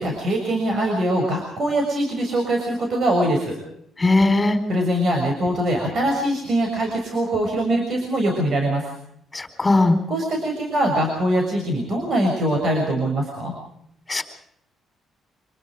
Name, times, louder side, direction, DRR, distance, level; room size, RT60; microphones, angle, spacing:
voice 1, 0.0-3.6 4.7-8.9 10.1-13.5, right 1 dB, 55° right, 2 dB, 6.8 m, -22 dB
voice 2, 4.0-4.6 9.3-9.9 14.1-14.2, left 2 dB, 20° left, 8 dB, 4.3 m, -18 dB
26.5 x 21.0 x 4.9 m, 0.73 s
cardioid pair, 90°, 0 cm